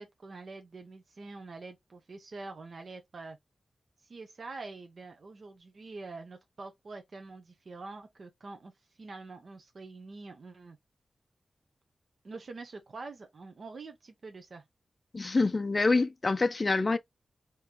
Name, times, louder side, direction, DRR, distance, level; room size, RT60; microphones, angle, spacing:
voice 1, 0.0-3.4 4.0-8.7 9.0-10.8 12.2-14.6, right 3 dB, 45° right, 0.8 m, -45 dB
voice 2, 15.1-17.0, left 3 dB, 30° left, 0.5 m, -26 dB
5.2 x 3.0 x 2.9 m
wide cardioid pair, 175°, 0 cm